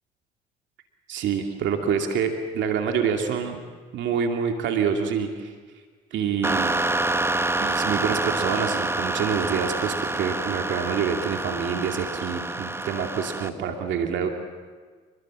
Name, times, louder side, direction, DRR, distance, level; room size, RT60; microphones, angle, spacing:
voice 1, 1.1-3.6 3.9-5.5 6.1-6.7 7.6-14.3, right 7 dB, 65° right, 4 dB, 2.5 m, -26 dB
sound 1, 6.4-13.5, right 2 dB, 10° right, 1.2 m, -27 dB
27.5 x 20.5 x 7.5 m, 1.5 s
supercardioid pair, 65°, 20 cm